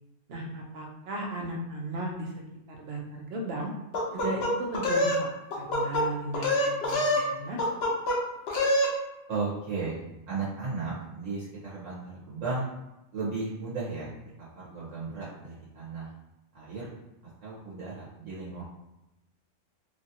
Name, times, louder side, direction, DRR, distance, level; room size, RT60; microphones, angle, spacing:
voice 1, 0.3-2.3 2.8-3.7 4.1-5.3 5.5-7.6, right 1 dB, 60° right, 0 dB, 0.8 m, -35 dB
sound 1, 3.9-5.2 5.5-6.0 6.3-7.3 7.6-8.2 8.5-8.9, left 1 dB, 60° left, 0.8 m, -25 dB
voice 2, 9.3-12.7 13.1-14.1 14.5-16.1 16.5-16.9 17.4-18.6, right 4 dB, 75° right, -8 dB, 1.2 m, -35 dB
3.0 x 2.5 x 2.7 m, 0.93 s
omnidirectional pair, 1.3 m